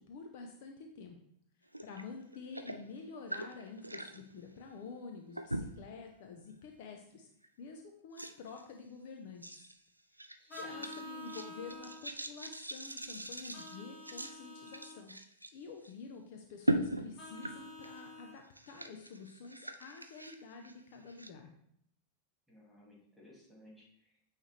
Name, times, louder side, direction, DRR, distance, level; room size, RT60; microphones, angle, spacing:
voice 1, 0.1-1.2 1.8-7.3 7.6-9.7 10.1-15.1 15.5-21.5, left 4 dB, 50° left, 4 dB, 0.7 m, -49 dB
sound 1, 1.7-2.0 2.3-4.2 5.3-5.9 6.5-6.7 7.4-7.5 8.2-8.6 9.4-9.8 10.2-15.5 15.8-15.9 16.6-18.1 18.4-21.3, right 1 dB, 85° right, 0.4 m, -40 dB
voice 2, 10.4-11.0 22.5-24.3, left 1 dB, ahead, -4 dB, 2.3 m, -60 dB
Vehicle horn car horn honking, 10.5-12.0 13.5-15.0 17.2-18.4, left 1 dB, 25° left, 1.7 m, -48 dB
8.8 x 3.3 x 3.2 m, 0.69 s
figure-of-eight pair, 90°, 0 cm